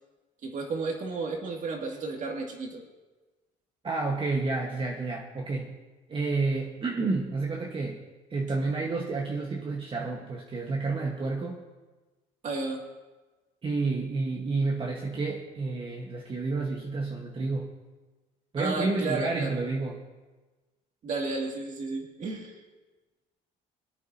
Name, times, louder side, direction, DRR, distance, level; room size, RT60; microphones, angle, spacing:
voice 1, 0.4-2.8 12.4-12.8 18.6-19.6 21.0-22.5, right 3 dB, 50° right, 1 dB, 2.3 m, -32 dB
voice 2, 3.8-5.8 6.1-8.0 8.3-11.6 13.6-17.7 18.5-20.0, right 3 dB, 30° right, -1 dB, 1.3 m, -30 dB
26.0 x 9.1 x 2.8 m, 1.2 s
cardioid pair, 110°, 17 cm